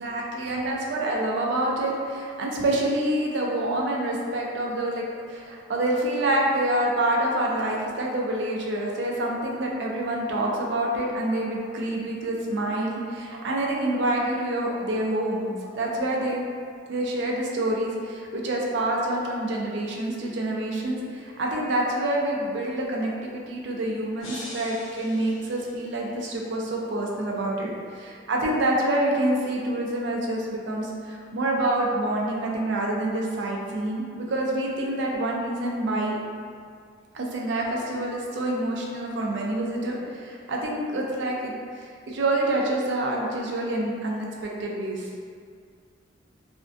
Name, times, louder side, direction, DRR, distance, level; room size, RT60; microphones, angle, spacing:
voice 1, 0.0-16.4 16.9-36.2 37.1-45.1, right 1 dB, 65° right, -2 dB, 0.4 m, -27 dB
sound 1, 24.2-26.3, left 1 dB, 90° left, 0.6 m, -42 dB
2.4 x 2.1 x 2.4 m, 2.2 s
head